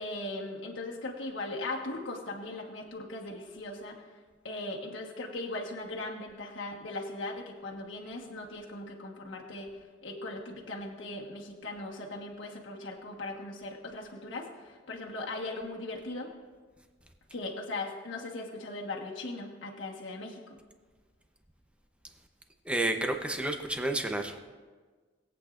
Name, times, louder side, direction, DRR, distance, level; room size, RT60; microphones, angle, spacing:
voice 1, 0.0-4.1 4.4-16.3 17.3-20.6, left 2 dB, 80° left, -2 dB, 1.4 m, -39 dB
voice 2, 22.7-24.4, right 1 dB, 5° right, 4 dB, 0.8 m, -30 dB
21.0 x 8.4 x 2.5 m, 1.4 s
head